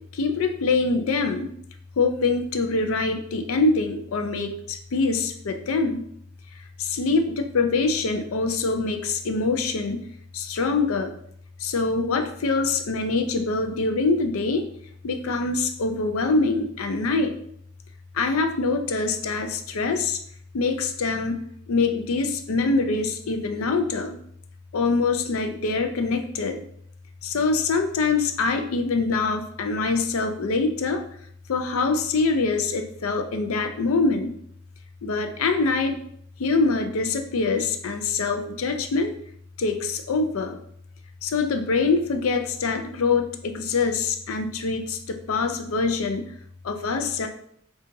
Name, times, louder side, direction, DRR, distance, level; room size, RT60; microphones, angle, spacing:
voice 1, 0.1-1.5 2.0-6.0 6.8-10.0 10.3-11.1 11.6-14.7 15.0-17.4 18.1-20.2 20.5-24.2 24.7-26.6 27.2-31.0 31.5-34.3 35.0-36.0 36.4-39.1 39.6-40.6 41.2-46.3 46.6-47.3, left 3 dB, 75° left, 6 dB, 0.5 m, -24 dB
5.2 x 2.4 x 2.7 m, 0.67 s
head